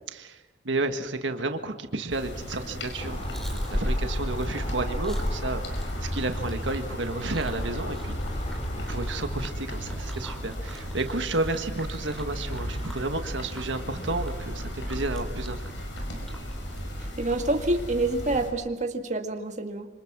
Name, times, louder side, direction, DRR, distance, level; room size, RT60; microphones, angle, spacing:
voice 1, 0.1-3.2 3.5-5.6 6.0-8.6 8.9-15.7, right 2 dB, 80° right, 7 dB, 1.6 m, -32 dB
sound 1, 2.1-18.5, equal, 80° left, 5.6 m, -35 dB
Chewing mastication, 2.9-17.5, right 1 dB, ahead, 3.9 m, -47 dB
sound 2, 3.0-9.5, equal, 35° left, 2.7 m, -32 dB
voice 2, 17.0-19.9, right 2 dB, 40° right, 4 dB, 1.9 m, -27 dB
26.5 x 26.0 x 6.1 m, 1.1 s
head